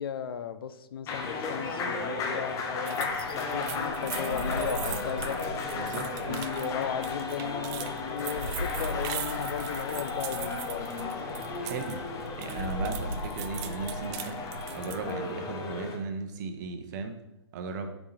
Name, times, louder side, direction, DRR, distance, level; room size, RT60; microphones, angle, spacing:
voice 1, 0.0-5.4 6.2-10.9, left 8 dB, 60° left, 11 dB, 0.5 m, -36 dB
sound 1, 1.1-16.0, left 4 dB, 25° left, 1.0 m, -34 dB
sound 2, 2.9-12.0 12.3-15.1, right 13 dB, 25° right, 0.3 m, -41 dB
sound 3, 3.0-14.9, right 1 dB, 80° right, 1.0 m, -40 dB
voice 2, 5.7-6.4 11.6-12.0 12.4-14.4 14.7-17.2 17.5-17.9, right 4 dB, 40° right, 7 dB, 1.0 m, -36 dB
8.4 x 4.5 x 4.2 m, 0.87 s
figure-of-eight pair, 125°, 14 cm